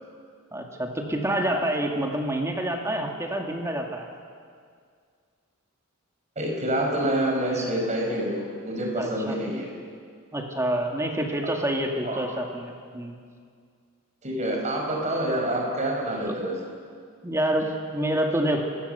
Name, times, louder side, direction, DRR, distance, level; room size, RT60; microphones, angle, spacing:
voice 1, 0.5-4.1 9.0-9.4 10.3-13.2 16.3-16.4 17.2-18.6, right 1 dB, 15° right, 1 dB, 2.1 m, -27 dB
voice 2, 6.4-9.7 11.4-11.5 12.0-12.2 14.2-16.6, right 1 dB, 35° right, 0 dB, 5.4 m, -27 dB
29.0 x 16.5 x 7.0 m, 2.1 s
head